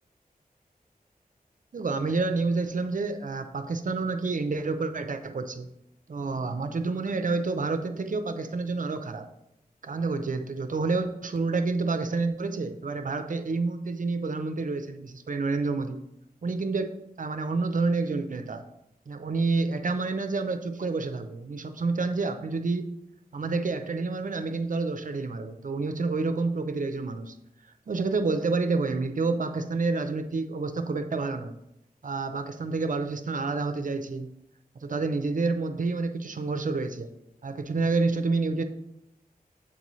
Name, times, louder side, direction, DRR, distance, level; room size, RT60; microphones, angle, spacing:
voice 1, 1.7-5.7 6.1-9.3 9.8-16.0 16.4-18.6 19.1-22.9 23.3-27.3 27.9-31.6 32.0-34.3 34.8-37.1 37.4-38.6, right 3 dB, 55° right, 9 dB, 0.5 m, -29 dB
7.6 x 4.0 x 3.1 m, 0.82 s
wide cardioid pair, 75°, 16 cm